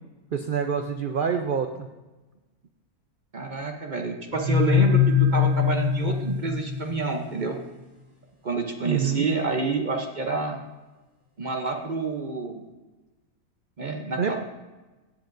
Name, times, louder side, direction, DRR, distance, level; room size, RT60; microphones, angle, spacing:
voice 1, 0.3-1.9 8.8-9.3 14.2-14.4, right 7 dB, 90° right, 6 dB, 0.4 m, -26 dB
voice 2, 3.3-7.6 8.4-10.6 11.4-12.6 13.8-14.4, right 4 dB, 40° right, 3 dB, 0.7 m, -28 dB
sound 1, 4.3-7.1, left 8 dB, 15° left, 1.8 m, -22 dB
15.0 x 7.6 x 2.6 m, 1.2 s
omnidirectional pair, 1.6 m